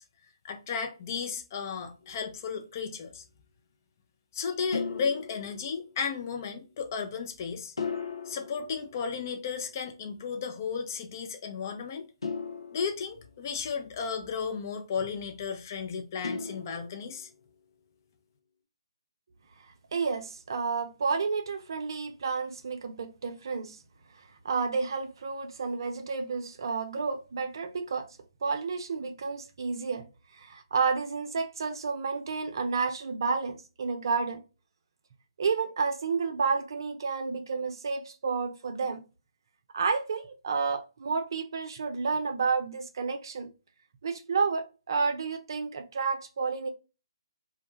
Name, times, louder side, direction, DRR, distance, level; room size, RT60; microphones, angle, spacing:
voice 1, 0.4-3.2 4.3-7.7 8.3-12.1 12.7-17.3, left 6 dB, 40° left, 0.5 m, -34 dB
sound 1, 2.0-2.5 4.7-6.2 7.8-9.7 12.2-13.9 16.2-17.4, left 5 dB, 75° left, 0.7 m, -38 dB
voice 2, 19.9-23.8 24.4-28.1 28.4-30.0 30.3-34.4 35.4-39.0 39.7-43.5 44.0-46.7, right 5 dB, 55° right, 0.5 m, -30 dB
2.4 x 2.2 x 3.0 m
figure-of-eight pair, 140°, 3 cm